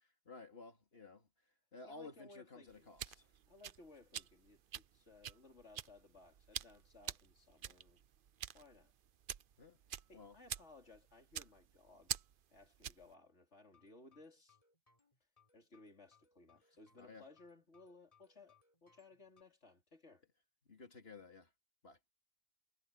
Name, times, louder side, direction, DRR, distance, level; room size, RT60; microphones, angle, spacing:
voice 1, 0.2-1.3 1.7-3.3 9.6-9.8 10.1-10.4 17.0-17.3 20.7-21.5 21.8-22.0, left 3 dB, 60° left, 3.0 m, -54 dB
voice 2, 1.8-2.9 3.5-8.0 8.5-8.9 10.1-12.1 12.5-14.6 15.5-20.2, left 2 dB, 75° left, 3.9 m, -61 dB
sound 1, 2.7-13.1, right 9 dB, 55° right, 0.8 m, -47 dB
sound 2, 13.7-19.4, left 5 dB, 30° left, 3.5 m, -73 dB
omnidirectional pair, 1.2 m